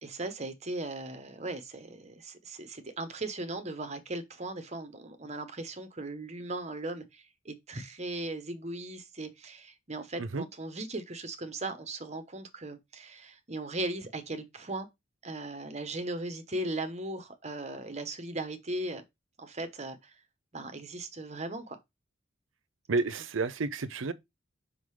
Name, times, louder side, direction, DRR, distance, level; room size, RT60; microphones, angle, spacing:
voice 1, 0.0-14.9 15.2-19.0 19.4-20.2 20.5-21.8, right 2 dB, 35° right, 1.1 m, -38 dB
voice 2, 22.9-24.1, right 3 dB, 80° right, 0.6 m, -30 dB
5.5 x 3.9 x 4.8 m
head